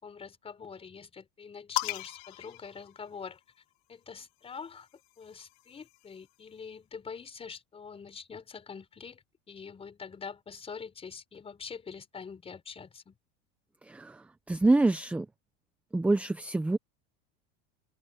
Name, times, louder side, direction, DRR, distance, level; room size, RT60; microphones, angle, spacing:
voice 1, 0.0-3.4 3.9-4.9 5.2-13.1, left 6 dB, 20° left, 4.8 m, -45 dB
sound 1, 1.8-3.6 4.7-6.3, left 21 dB, 75° left, 1.7 m, -38 dB
voice 2, 13.8-15.3 15.9-16.8, right 2 dB, 5° right, 0.6 m, -26 dB
cardioid pair, 160°, 32 cm